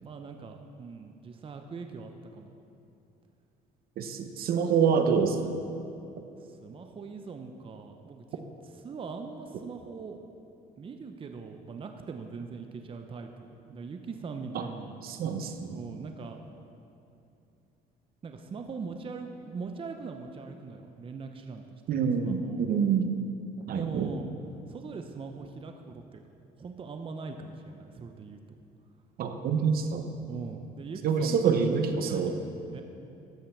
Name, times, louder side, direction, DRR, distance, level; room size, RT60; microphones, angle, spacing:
voice 1, 0.0-2.6 6.4-8.4 8.8-10.2 10.8-13.3 13.7-14.9 15.7-16.4 18.2-22.6 23.6-24.3 24.7-26.2 26.6-28.4 30.3-32.4 32.7-32.8, right 4 dB, 30° right, 5 dB, 0.7 m, -41 dB
voice 2, 4.0-5.5 14.5-14.7 15.0-15.8 21.9-23.1 23.7-24.1 29.2-30.1 31.0-32.4, right 6 dB, 60° right, 7 dB, 0.9 m, -26 dB
13.0 x 5.6 x 6.9 m, 2.7 s
cardioid pair, 110°, 17 cm